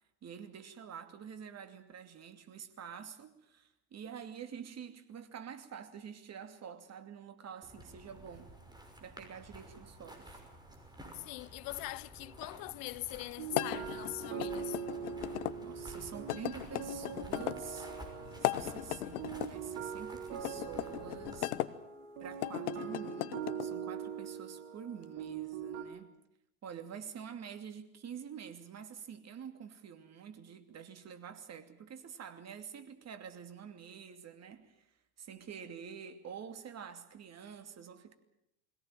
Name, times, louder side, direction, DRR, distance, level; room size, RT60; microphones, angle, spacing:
voice 1, 0.2-8.5 9.0-10.4 15.6-18.0 18.4-21.5 22.2-26.1 26.6-34.9 35.2-38.1, right 7 dB, 35° right, 2.7 m, -47 dB
sound 1, 7.6-21.5, right 1 dB, 10° right, 6.0 m, -52 dB
voice 2, 11.1-14.8, left 23 dB, 50° left, 0.8 m, -42 dB
sound 2, 13.4-25.8, right 7 dB, 60° right, 4.0 m, -42 dB
sound 3, 13.5-15.5 16.3-17.6 18.3-19.5 20.4-21.7 22.3-23.7, left 14 dB, 80° left, 1.1 m, -37 dB
22.0 x 17.5 x 8.9 m
hypercardioid pair, 90°, 44 cm